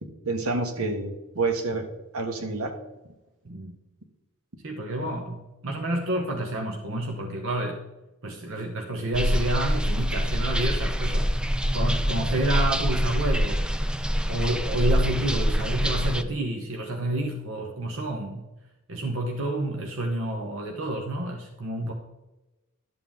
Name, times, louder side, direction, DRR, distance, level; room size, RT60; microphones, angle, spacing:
voice 1, 0.0-1.9 2.1-2.7, right 3 dB, 80° right, 5 dB, 1.4 m, -28 dB
voice 2, 4.6-7.9 8.2-11.4 11.7-13.6 14.3-18.5 18.9-21.9, right 1 dB, 60° right, 2 dB, 0.9 m, -29 dB
sound 1, 9.1-16.2, equal, 5° right, 0.3 m, -25 dB
12.0 x 7.4 x 3.6 m, 1.0 s
head